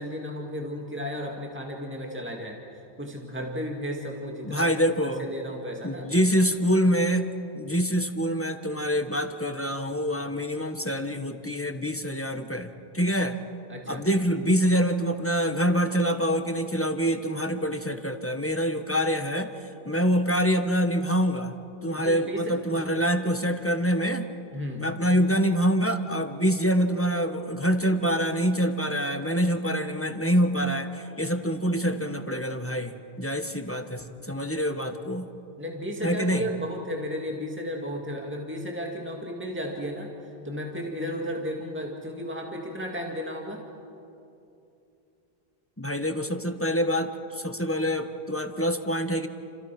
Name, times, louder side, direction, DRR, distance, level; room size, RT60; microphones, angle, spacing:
voice 1, 0.0-4.8 5.0-6.1 13.7-14.0 22.0-22.6 24.5-24.9 35.6-43.6, equal, 10° right, 0 dB, 2.2 m, -34 dB
voice 2, 4.4-5.2 5.8-7.3 7.5-13.4 13.9-19.5 19.8-21.5 21.8-24.2 24.8-35.3 36.0-36.4 45.8-49.3, equal, 15° left, 7 dB, 1.4 m, -25 dB
30.0 x 27.0 x 6.1 m, 2.7 s
omnidirectional pair, 1.0 m